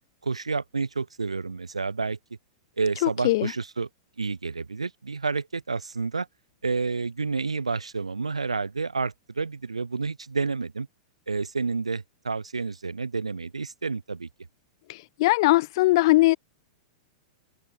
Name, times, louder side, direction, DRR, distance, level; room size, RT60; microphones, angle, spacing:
voice 1, 0.2-2.2 2.8-3.9 4.2-6.3 6.6-10.9 11.3-14.3, right 4 dB, 90° right, 5.3 m, -29 dB
voice 2, 15.2-16.4, left 19 dB, 55° left, 0.4 m, -19 dB
open air
hypercardioid pair, 105°, 3 cm